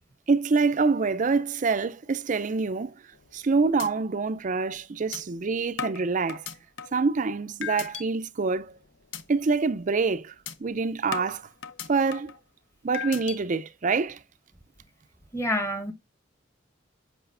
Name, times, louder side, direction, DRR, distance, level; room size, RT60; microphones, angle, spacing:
voice 1, 0.3-2.9 3.3-6.4 6.9-8.7 9.3-10.3 10.6-11.5 11.9-12.3 12.8-14.2, right 4 dB, 40° right, 0.5 m, -26 dB
sound 1, 3.1-3.4 3.8-3.9 4.3-4.4 5.1-5.2 5.8-7.1 7.6-8.0 8.5-8.7 9.1-9.2 9.6-9.8 10.5-10.6 11.1-12.4 12.9-13.4, left 8 dB, 65° left, 0.7 m, -36 dB
voice 2, 15.3-15.9, left 1 dB, 15° left, 1.2 m, -27 dB
8.0 x 5.0 x 2.5 m
head